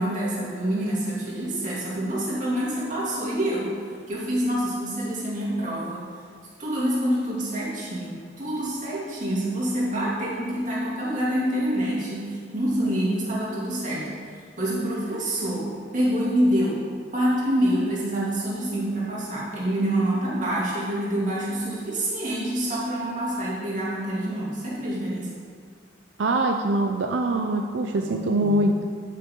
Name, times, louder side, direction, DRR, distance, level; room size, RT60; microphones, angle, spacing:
voice 1, 0.0-3.8 4.1-6.0 6.6-14.2 14.6-16.8 17.1-25.3 28.0-28.6, right 1 dB, 45° right, -6 dB, 2.7 m, -26 dB
voice 2, 26.2-28.9, right 2 dB, 85° right, 3 dB, 0.6 m, -23 dB
12.5 x 6.7 x 3.8 m, 2.1 s
head